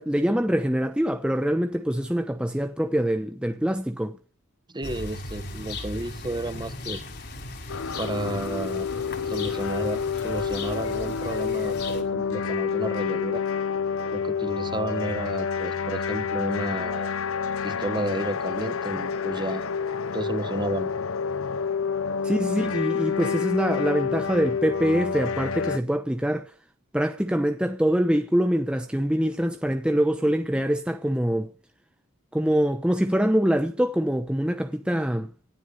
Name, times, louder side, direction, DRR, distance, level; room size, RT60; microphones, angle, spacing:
voice 1, 0.0-4.2 22.2-26.5 26.9-31.5 32.3-35.3, equal, 5° right, 0.9 m, -24 dB
voice 2, 4.7-7.0 8.0-8.9 9.3-13.4 14.1-17.1 17.6-19.6 20.1-20.9, right 1 dB, 20° right, 1.3 m, -32 dB
sound 1, 4.8-12.0, left 2 dB, 50° left, 7.0 m, -37 dB
sound 2, 7.7-25.8, left 6 dB, 65° left, 0.7 m, -28 dB
18.0 x 13.0 x 5.3 m
head